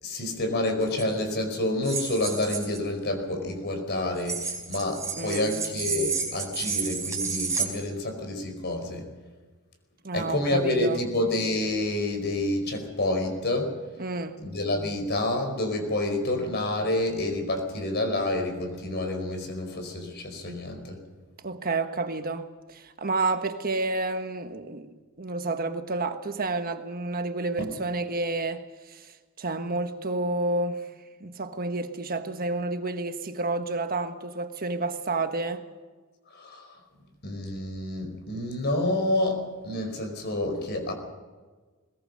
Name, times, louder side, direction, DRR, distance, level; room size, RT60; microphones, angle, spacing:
voice 1, 0.0-9.1 10.1-13.7 14.4-21.0 27.6-27.7 36.3-36.7 37.2-40.9, left 1 dB, 50° left, 5.0 m, -28 dB
sound 1, 0.9-1.0 1.8-2.8 4.2-7.7, right 5 dB, 15° right, 4.6 m, -31 dB
voice 2, 5.2-5.5 10.0-11.0 14.0-14.4 21.4-29.1 29.4-30.8 31.2-35.6, right 3 dB, 45° right, 1.4 m, -30 dB
21.5 x 20.5 x 6.6 m
head